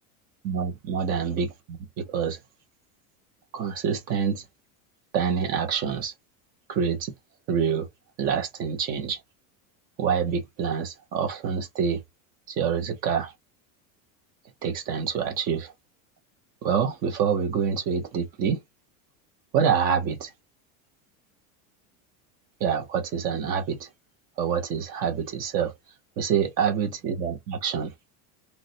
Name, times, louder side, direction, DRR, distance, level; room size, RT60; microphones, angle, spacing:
voice 1, 0.4-2.4 3.5-4.4 5.1-6.1 6.7-7.1 7.5-7.9 8.2-9.2 10.0-12.0 12.5-13.3 14.6-15.7 16.6-18.6 19.5-20.3 22.6-23.9 24.4-25.7 26.2-27.9, right 7 dB, 20° right, 0.4 m, -26 dB
3.7 x 2.1 x 2.5 m
cardioid pair, 175°, 42 cm